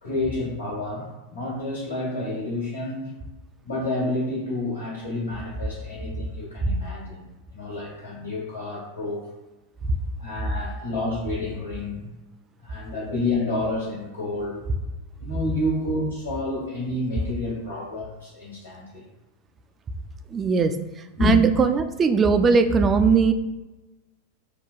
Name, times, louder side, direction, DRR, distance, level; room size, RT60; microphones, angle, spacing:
voice 1, 0.0-3.1 3.6-7.3 7.5-9.3 10.2-12.1 12.6-14.6 15.2-19.0 21.2-21.4, left 2 dB, 75° left, -6 dB, 1.3 m, -29 dB
voice 2, 20.3-20.7 21.2-23.3, right 5 dB, 25° right, 8 dB, 0.3 m, -19 dB
5.5 x 2.2 x 2.4 m, 1.1 s
figure-of-eight pair, 90°, 0 cm